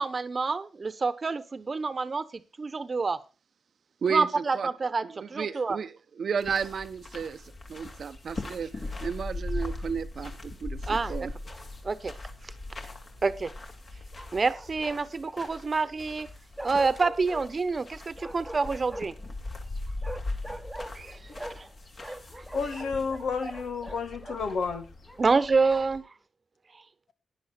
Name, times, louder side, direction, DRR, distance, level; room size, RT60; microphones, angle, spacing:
voice 1, 0.0-3.2 4.1-5.8 10.9-11.3 11.8-12.1 13.2-13.5 14.3-16.3 16.6-19.1 20.9-21.2 21.5-21.6 22.1-22.2 25.2-26.1, right 4 dB, 35° right, 1.1 m, -27 dB
voice 2, 4.0-4.7 5.0-7.4 7.7-11.3, right 6 dB, 60° right, 0.8 m, -33 dB
sound 1, 6.4-26.0, left 2 dB, 45° left, 2.6 m, -40 dB
Bark, 11.0-11.7 14.1-15.2 16.6-17.5 18.2-19.3 20.0-21.7 22.0-24.4 25.1-26.0, right 1 dB, 5° right, 1.1 m, -43 dB
voice 3, 22.5-24.9, left 5 dB, 90° left, 2.0 m, -31 dB
18.0 x 10.5 x 2.4 m
wide cardioid pair, 115°, 0 cm